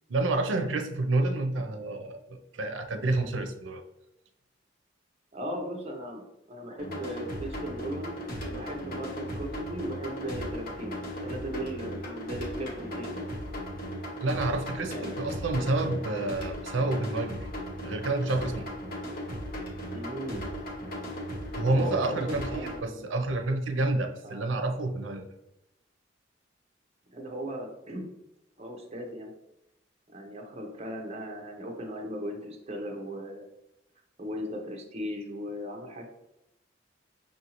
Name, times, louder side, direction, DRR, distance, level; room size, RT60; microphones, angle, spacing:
voice 1, 0.1-3.8 14.2-17.5 17.8-18.7 21.5-25.3, right 2 dB, 80° right, 6 dB, 0.5 m, -29 dB
voice 2, 5.3-6.2 6.5-8.2 8.4-13.2 14.9-15.4 15.8-15.9 19.9-20.4 21.7-23.0 24.2-24.4 27.1-28.1 28.6-29.3 30.1-33.4 34.2-36.1, equal, 35° right, 2 dB, 0.8 m, -37 dB
sound 1, 6.8-22.8, equal, 50° left, 0.9 m, -37 dB
5.5 x 2.7 x 2.9 m, 0.88 s
head